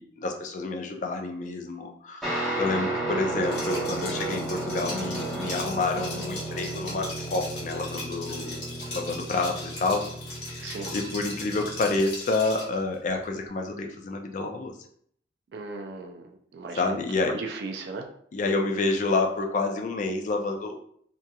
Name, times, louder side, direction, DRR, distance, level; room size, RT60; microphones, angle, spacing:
voice 1, 0.0-8.6 8.9-10.1 10.5-14.7 16.7-17.4 18.3-20.8, left 3 dB, 45° left, 4 dB, 0.3 m, -29 dB
Guitar, 2.2-12.0, right 2 dB, ahead, 0.8 m, -33 dB
Liquid, 3.4-12.8, left 2 dB, 75° left, 1.1 m, -39 dB
voice 2, 10.6-10.9 15.5-17.0 17.3-18.1, right 3 dB, 65° right, 4 dB, 0.3 m, -36 dB
2.8 x 2.5 x 2.2 m, 0.64 s
head